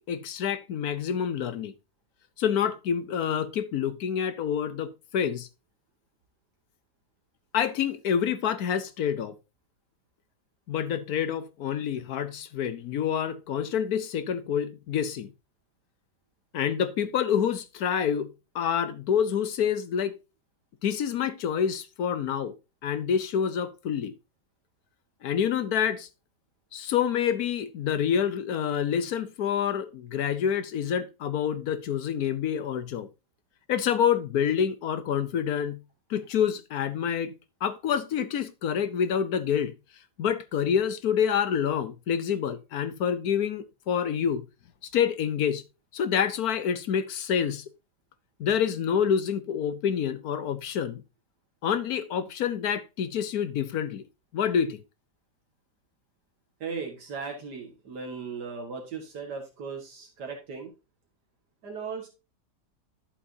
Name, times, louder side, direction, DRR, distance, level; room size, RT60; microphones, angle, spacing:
voice 1, 0.0-1.7 2.4-5.5 7.5-9.4 10.7-15.3 16.5-20.1 20.8-22.5 22.8-24.1 25.2-26.1 26.7-33.1 33.7-35.8 36.1-37.4 37.6-39.7 40.2-44.4 44.9-45.6 45.9-47.6 48.4-51.0 51.6-54.0 54.3-54.8, left 8 dB, 70° left, 1.2 m, -27 dB
voice 2, 56.6-60.7 61.6-62.1, right 5 dB, 80° right, 2.2 m, -37 dB
11.5 x 7.2 x 2.7 m
omnidirectional pair, 1.7 m